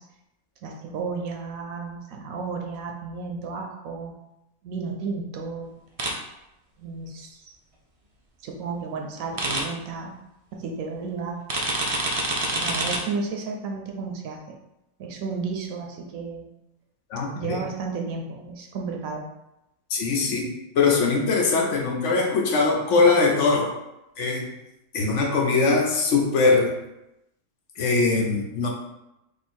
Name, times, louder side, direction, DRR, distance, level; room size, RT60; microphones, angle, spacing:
voice 1, 0.6-4.1 4.6-5.7 6.8-7.5 8.4-10.2 10.5-11.4 12.5-14.6 15.0-16.5 17.3-19.2, right 4 dB, 80° right, 2 dB, 1.0 m, -33 dB
sound 1, 6.0-6.1 9.4-9.6 11.5-13.0, right 2 dB, 50° right, 0.4 m, -26 dB
voice 2, 17.1-17.6 19.9-23.7 24.2-24.5 24.9-26.7 27.8-28.7, left 4 dB, 65° left, 0 dB, 0.9 m, -21 dB
3.6 x 2.6 x 4.3 m, 0.90 s
omnidirectional pair, 1.4 m